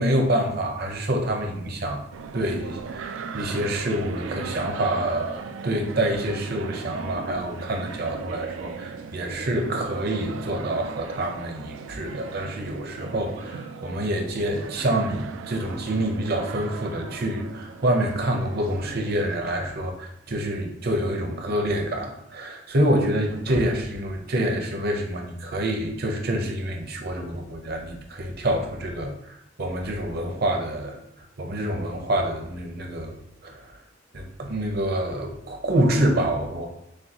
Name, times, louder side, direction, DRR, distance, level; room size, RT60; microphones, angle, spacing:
voice 1, 0.0-2.0 2.3-33.2 33.4-33.8 34.1-36.7, right 1 dB, 55° right, 3 dB, 0.7 m, -27 dB
sound 1, 2.1-19.4, right 5 dB, 80° right, 0.3 m, -38 dB
6.4 x 2.4 x 2.9 m, 0.81 s
head